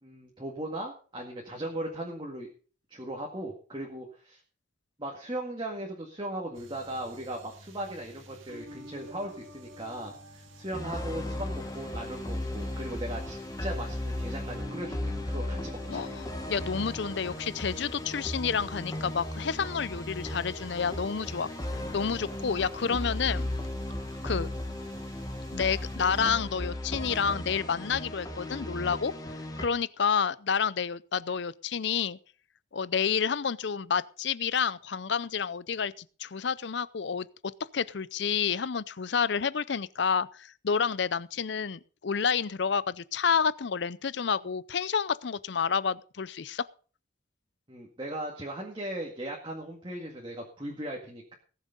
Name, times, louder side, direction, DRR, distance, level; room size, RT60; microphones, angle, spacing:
voice 1, 0.0-2.5 2.9-4.4 5.0-16.1 47.7-51.3, right 1 dB, 25° right, 2.0 m, -38 dB
sound 1, 6.5-26.4, equal, 80° right, 2.2 m, -50 dB
sound 2, 10.7-29.7, left 1 dB, 20° left, 1.6 m, -36 dB
voice 2, 15.9-21.5 21.9-23.5 24.2-24.5 25.5-29.1 29.6-32.2 32.7-37.3 37.7-46.6, left 6 dB, 60° left, 0.5 m, -29 dB
18.5 x 7.3 x 5.3 m
head